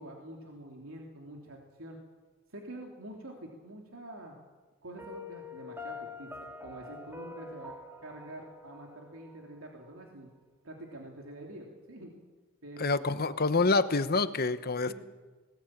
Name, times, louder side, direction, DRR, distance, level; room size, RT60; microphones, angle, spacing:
voice 1, 0.0-2.0 2.5-4.4 4.8-7.7 8.0-10.3 10.6-12.1 12.6-13.3 14.9-15.0, right 1 dB, 80° right, 0 dB, 3.1 m, -46 dB
Piano, 5.0-9.9, left 3 dB, 10° right, 2.3 m, -46 dB
voice 2, 12.8-14.9, left 3 dB, 50° left, 12 dB, 1.0 m, -27 dB
20.5 x 19.0 x 8.8 m, 1.3 s
head